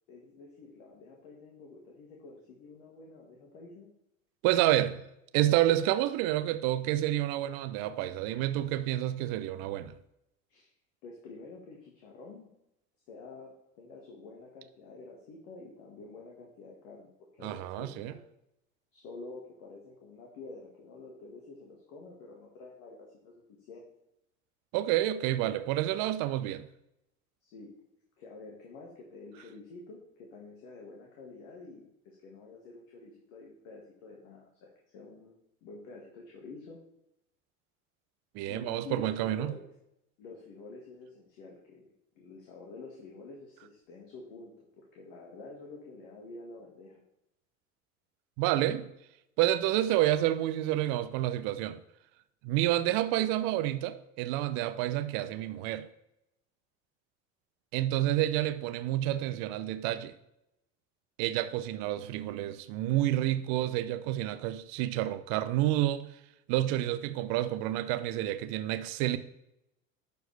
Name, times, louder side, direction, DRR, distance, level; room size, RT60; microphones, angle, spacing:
voice 1, 0.1-3.9 10.5-10.7 11.0-12.5 13.1-17.1 17.4-18.2 18.9-23.4 23.7-23.9 25.4-25.5 27.4-27.7 28.2-35.3 35.6-36.8 38.5-39.7 40.2-47.0, left 3 dB, 65° left, 1.8 m, -48 dB
voice 2, 4.4-5.0 5.3-9.9 17.4-18.1 24.7-26.7 38.3-39.5 48.4-48.9 49.4-51.8 52.4-55.9 57.7-60.1 61.2-66.1 66.5-69.2, right 14 dB, 60° right, 0.7 m, -29 dB
11.5 x 4.7 x 3.3 m
hypercardioid pair, 70°, 40 cm